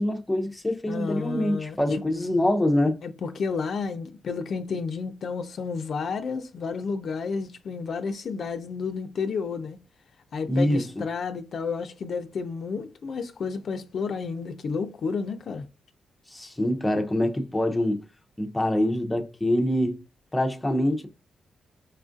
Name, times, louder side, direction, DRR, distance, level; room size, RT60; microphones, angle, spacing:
voice 1, 0.0-3.0 10.5-10.8 16.3-18.0 18.4-20.0 20.3-21.1, left 1 dB, 10° left, 0.6 m, -25 dB
voice 2, 0.9-2.0 3.0-9.8 10.3-15.7, left 5 dB, 60° left, 0.4 m, -31 dB
4.3 x 2.4 x 2.5 m
cardioid pair, 100°, 0 cm